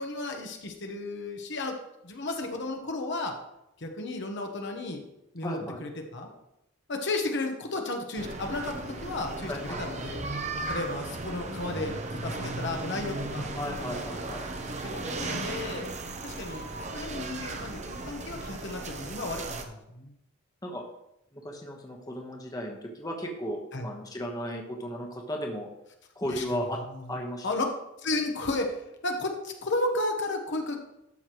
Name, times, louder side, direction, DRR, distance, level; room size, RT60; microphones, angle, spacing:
voice 1, 0.0-1.8 2.0-3.3 3.8-5.0 5.3-6.3 6.9-10.2 10.7-13.5 14.7-15.9 16.2-20.1 23.7-23.9 26.3-26.4 26.9-27.1 27.4-27.6 28.0-30.8, left 2 dB, 60° left, 3 dB, 1.1 m, -33 dB
voice 2, 5.4-5.8 9.5-9.8 13.5-14.4 20.6-20.8 21.3-25.7 26.1-26.8 27.1-27.5, equal, 20° left, 0 dB, 1.2 m, -35 dB
sound 1, 8.2-19.6, right 2 dB, 35° right, 0.8 m, -36 dB
12.5 x 6.6 x 3.1 m, 0.85 s
head